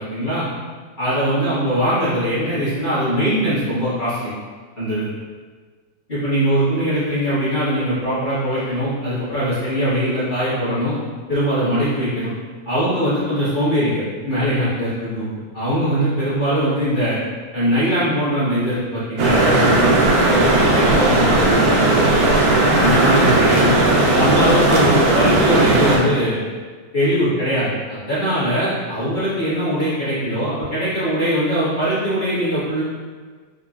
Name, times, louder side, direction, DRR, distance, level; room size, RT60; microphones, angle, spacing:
voice 1, 0.1-0.4 1.0-4.3 4.8-5.0 6.1-10.9 11.3-12.3 12.6-15.3 15.5-17.2 17.5-23.8 24.1-26.3 26.9-32.8, equal, 30° left, -13 dB, 1.1 m, -21 dB
sound 1, 19.2-26.0, right 2 dB, 80° right, 0.8 m, -16 dB
3.9 x 2.8 x 2.4 m, 1.5 s
omnidirectional pair, 2.2 m